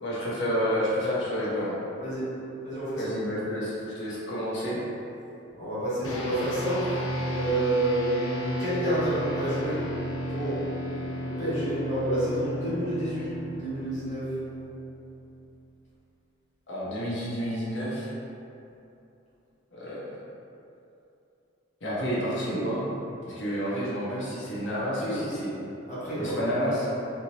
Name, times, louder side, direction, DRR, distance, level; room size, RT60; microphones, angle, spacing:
voice 1, 0.0-1.8 3.0-4.8 16.7-18.1 19.7-20.1 21.8-22.8 23.2-25.5 26.2-26.9, equal, 60° left, -8 dB, 1.0 m, -30 dB
voice 2, 2.0-2.3 2.6-3.1 5.6-7.0 7.3-9.8 10.3-10.6 11.2-14.3 24.8-25.2 25.9-26.4, right 1 dB, 35° left, -11 dB, 1.1 m, -29 dB
sound 1, 6.0-15.7, equal, 80° left, 0.5 m, -34 dB
3.5 x 2.9 x 2.8 m, 2.8 s
head